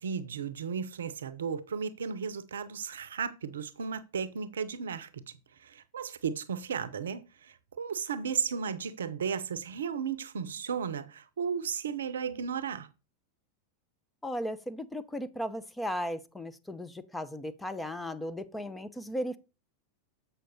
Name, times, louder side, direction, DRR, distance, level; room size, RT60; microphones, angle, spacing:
voice 1, 0.0-5.2 5.6-7.2 7.8-12.9, right 6 dB, 70° right, 0.6 m, -34 dB
voice 2, 14.2-19.4, equal, 10° left, 0.7 m, -36 dB
7.7 x 5.6 x 4.1 m
figure-of-eight pair, 90°, 0 cm